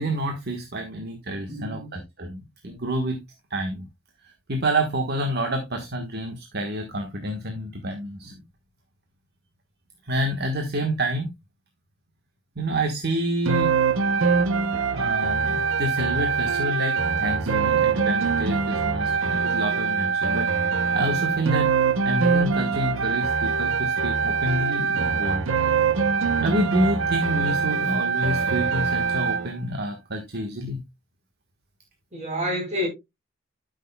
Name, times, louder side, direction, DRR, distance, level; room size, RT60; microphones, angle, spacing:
voice 1, 0.0-3.2 3.5-3.8 4.5-8.4 10.0-11.3 12.6-13.7 14.9-20.5 20.9-21.7 22.0-25.4 26.4-30.8, right 1 dB, 50° right, 1.3 m, -28 dB
voice 2, 1.5-2.0 32.1-32.9, equal, 35° right, 4.8 m, -29 dB
sound 1, 13.5-29.5, right 5 dB, 70° right, 0.8 m, -23 dB
13.0 x 6.5 x 2.2 m
head